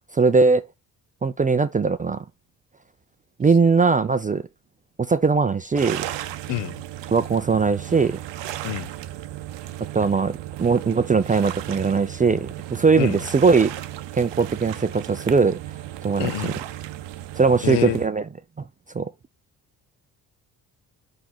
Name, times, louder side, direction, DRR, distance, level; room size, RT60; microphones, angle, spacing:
voice 1, 0.1-0.6 1.2-2.2 3.4-4.4 5.0-6.0 7.1-8.2 9.9-13.7 14.1-15.6 16.0-16.5 17.4-18.2 18.9-19.1, right 4 dB, 20° right, 0.4 m, -20 dB
sound 1, 5.8-18.1, right 13 dB, 60° right, 0.8 m, -35 dB
voice 2, 6.5-6.8 8.6-8.9 13.0-13.2 16.2-16.6 17.6-18.0, left 15 dB, 60° left, 0.7 m, -27 dB
5.4 x 4.0 x 4.4 m
hypercardioid pair, 50°, 48 cm